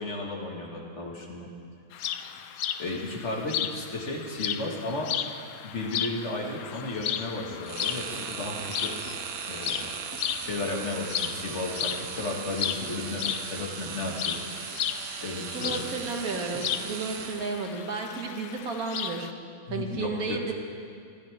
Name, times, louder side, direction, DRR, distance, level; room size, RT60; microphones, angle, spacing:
voice 1, 0.0-1.5 2.8-5.1 5.6-8.9 9.5-9.8 10.4-14.5 15.2-15.9 19.7-20.5, left 2 dB, 55° left, -1 dB, 2.2 m, -34 dB
sound 1, 1.9-19.3, left 10 dB, 90° left, 1.1 m, -35 dB
sound 2, 7.0-17.9, equal, 15° right, 2.0 m, -48 dB
sound 3, 7.6-17.8, right 8 dB, 65° right, 1.0 m, -38 dB
voice 2, 15.5-19.3 19.7-20.5, right 4 dB, 85° right, 2 dB, 1.9 m, -32 dB
23.5 x 12.5 x 3.6 m, 2.3 s
omnidirectional pair, 1.5 m